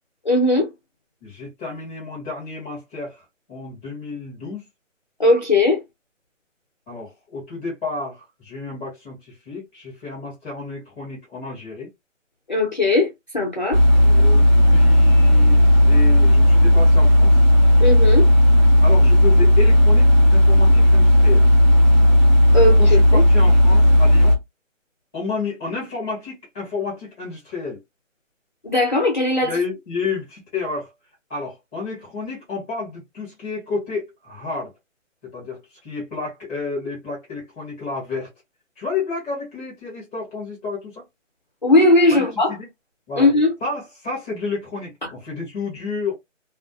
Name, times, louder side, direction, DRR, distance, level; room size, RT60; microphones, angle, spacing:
voice 1, 0.2-0.7 5.2-5.8 12.5-13.8 17.8-18.2 22.5-23.2 28.6-29.6 41.6-42.5 43.2-43.5, left 2 dB, 35° left, 0.5 m, -18 dB
voice 2, 1.2-4.6 6.9-11.9 14.0-17.4 18.8-21.5 22.6-24.4 25.1-27.8 29.4-30.9 31.3-34.7 35.2-38.3 38.8-41.0 42.1-42.7 43.1-43.3 43.6-46.1, left 4 dB, 5° right, 0.9 m, -31 dB
sound 1, 13.7-24.4, left 1 dB, 35° right, 0.7 m, -13 dB
2.4 x 2.4 x 2.3 m
hypercardioid pair, 170°, 39 cm